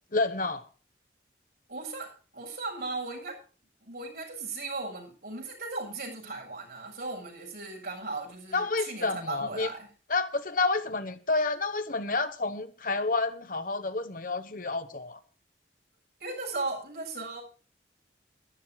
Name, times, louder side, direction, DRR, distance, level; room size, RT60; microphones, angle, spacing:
voice 1, 0.1-0.6 8.5-9.7 10.1-15.2, left 3 dB, 50° left, 1.1 m, -29 dB
voice 2, 1.7-3.4 3.8-9.9 16.2-17.4, right 3 dB, 60° right, 7.4 m, -37 dB
14.0 x 12.0 x 4.6 m
head